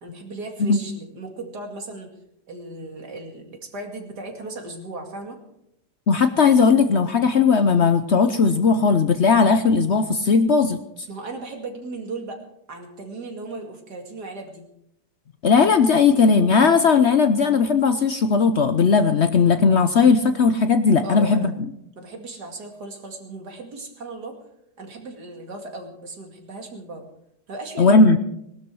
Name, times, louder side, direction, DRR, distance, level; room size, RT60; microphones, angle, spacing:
voice 1, 0.0-2.1 2.5-5.4 11.1-12.4 12.7-14.6 21.0-21.5 22.0-24.4 24.8-27.1 27.5-28.0, right 2 dB, 75° right, 3 dB, 2.9 m, -36 dB
voice 2, 6.1-10.8 15.4-21.5 27.8-28.2, left 5 dB, 55° left, 9 dB, 0.9 m, -17 dB
19.5 x 12.5 x 4.8 m, 0.78 s
omnidirectional pair, 1.8 m